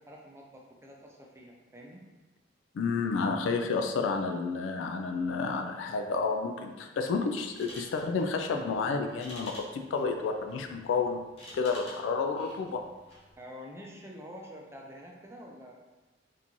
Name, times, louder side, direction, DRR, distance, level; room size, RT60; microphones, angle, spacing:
voice 1, 0.0-2.1 13.4-15.8, equal, 15° right, -1 dB, 0.5 m, -47 dB
voice 2, 2.7-11.2 11.5-12.8, left 4 dB, 85° left, 5 dB, 0.3 m, -30 dB
sound 1, 7.4-13.3, left 1 dB, 35° left, 1.0 m, -50 dB
3.7 x 2.5 x 2.9 m, 1.2 s
head